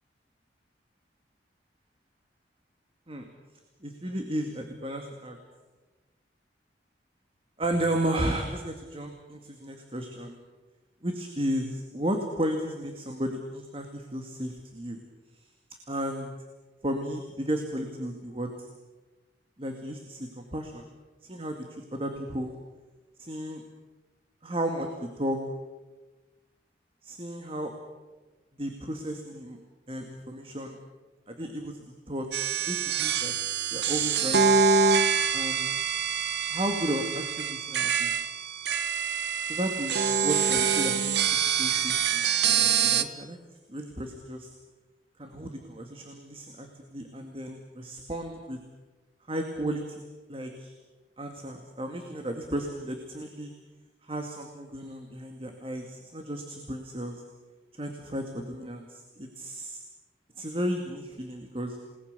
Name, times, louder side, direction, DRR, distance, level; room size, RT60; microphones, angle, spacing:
voice 1, 3.8-5.4 7.6-10.4 11.0-15.0 15.9-16.3 16.8-18.7 19.6-20.9 21.2-22.5 23.2-23.6 24.4-24.9 25.2-25.4 27.0-27.7 28.6-29.6 29.9-30.8 31.3-31.8 32.1-32.3 32.7-33.3 33.7-34.4 35.3-35.7 36.5-38.1 39.4-43.4 43.7-44.5 45.2-48.6 49.3-50.0 50.3-50.7 51.2-53.5 54.0-57.2 57.8-59.8 60.4-61.8, right 1 dB, 30° right, 4 dB, 2.1 m, -34 dB
sound 1, 32.3-43.0, right 6 dB, 70° right, 1.2 m, -25 dB
29.0 x 19.5 x 6.8 m, 1.2 s
head